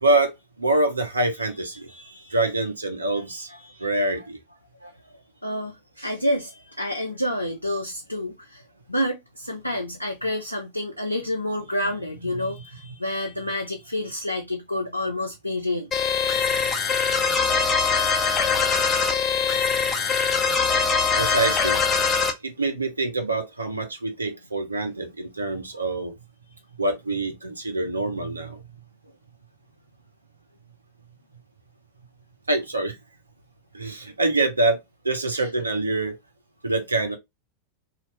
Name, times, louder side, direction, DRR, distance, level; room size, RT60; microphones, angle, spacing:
voice 1, 0.0-1.9 2.3-3.5 3.8-4.4 12.3-12.4 21.2-21.9 22.4-26.1 26.8-28.6 32.5-33.0 33.7-34.8 35.0-36.2 36.6-37.2, right 2 dB, 80° right, 0.7 m, -25 dB
voice 2, 1.7-2.4 3.3-3.9 4.8-5.1 5.4-8.6 8.9-15.9 17.8-18.2 35.3-35.5, left 1 dB, 85° left, 0.4 m, -29 dB
sound 1, 15.9-22.3, left 5 dB, 20° left, 0.7 m, -22 dB
2.8 x 2.4 x 3.0 m
figure-of-eight pair, 90°, 0 cm